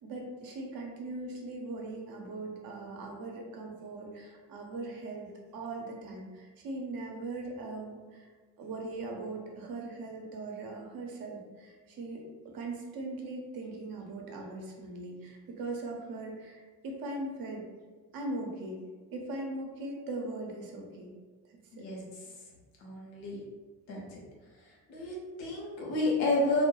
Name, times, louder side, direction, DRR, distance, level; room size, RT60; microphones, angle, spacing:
voice 1, 0.0-8.3 8.6-17.6 18.1-18.8 19.1-21.1 21.5-21.9, right 2 dB, 45° right, 1 dB, 0.7 m, -40 dB
voice 2, 22.8-23.4 23.9-24.2 24.7-26.6, left 2 dB, 85° left, -3 dB, 0.7 m, -31 dB
2.1 x 2.0 x 3.0 m, 1.4 s
hypercardioid pair, 50°, 50 cm